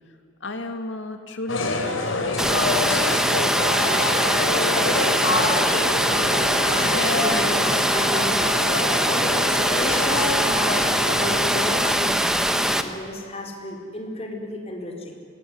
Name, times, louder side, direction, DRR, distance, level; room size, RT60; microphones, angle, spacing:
voice 1, 0.4-3.5, left 2 dB, 65° left, 6 dB, 2.7 m, -35 dB
sound 1, 1.5-11.9, left 2 dB, 85° left, 4.0 m, -26 dB
Water, 2.4-12.8, right 1 dB, 5° right, 1.3 m, -22 dB
voice 2, 6.8-8.7 9.1-15.1, left 1 dB, 30° left, 2 dB, 4.6 m, -34 dB
25.5 x 20.5 x 9.9 m, 2.3 s
head